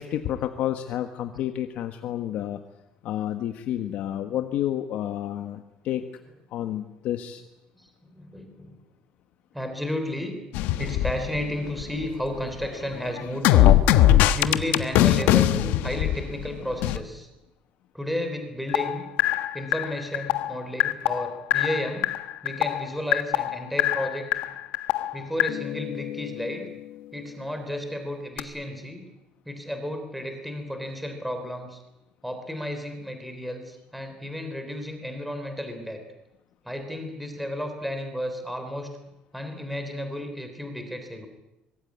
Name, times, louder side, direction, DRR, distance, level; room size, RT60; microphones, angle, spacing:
voice 1, 0.0-2.6 3.0-6.0 6.5-7.4, left 11 dB, 55° left, 7 dB, 1.5 m, -30 dB
voice 2, 7.8-8.8 9.5-10.4 10.8-13.8 14.3-17.3 17.9-19.0 19.5-22.2 22.4-24.3 25.1-26.7 27.1-29.0 29.5-31.8 32.2-36.0 36.7-39.0 39.3-41.3, left 1 dB, ahead, 6 dB, 3.5 m, -32 dB
sound 1, 10.5-12.0 12.3-17.0 18.7-26.6 28.4-28.5, left 13 dB, 75° left, 1.4 m, -22 dB
24.5 x 21.5 x 9.6 m, 0.91 s
cardioid pair, 175°, 3 cm